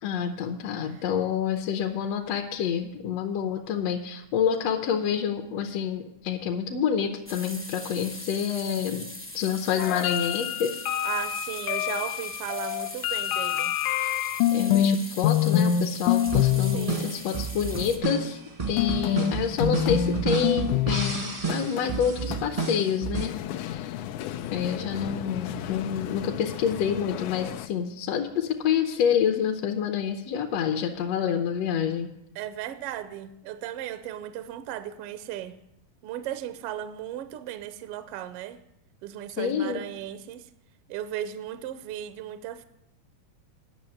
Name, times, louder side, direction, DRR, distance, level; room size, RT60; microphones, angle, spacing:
voice 1, 0.0-9.1 9.3-10.8 14.5-18.4 18.7-24.0 24.5-32.1 39.4-39.9, left 8 dB, 70° left, 1.8 m, -28 dB
sound 1, 7.2-18.0, left 1 dB, 10° left, 0.5 m, -41 dB
sound 2, 9.8-15.0 15.2-15.8 16.1-16.8 18.8-27.7, left 11 dB, 90° left, 2.1 m, -27 dB
voice 2, 11.0-13.8 16.7-17.2 32.3-35.6 36.0-38.6 39.0-40.5 40.9-42.7, right 11 dB, 80° right, 1.3 m, -36 dB
sound 3, 16.3-23.3, right 5 dB, 30° right, 0.6 m, -31 dB
10.5 x 6.4 x 8.7 m
omnidirectional pair, 3.3 m